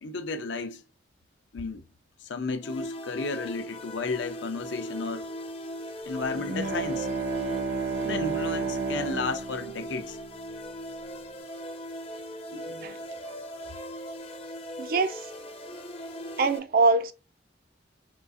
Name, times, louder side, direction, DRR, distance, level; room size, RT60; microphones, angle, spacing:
voice 1, 0.0-0.8 1.5-1.8 2.2-5.3 6.1-7.1 8.0-10.2, left 4 dB, 85° left, 0.5 m, -33 dB
sound 1, 2.6-16.6, equal, 30° left, 0.5 m, -39 dB
Bowed string instrument, 6.3-10.9, right 4 dB, 70° right, 0.8 m, -32 dB
voice 2, 12.5-13.0 14.8-15.2 16.4-17.1, right 3 dB, 50° right, 0.3 m, -24 dB
3.7 x 2.3 x 2.4 m
head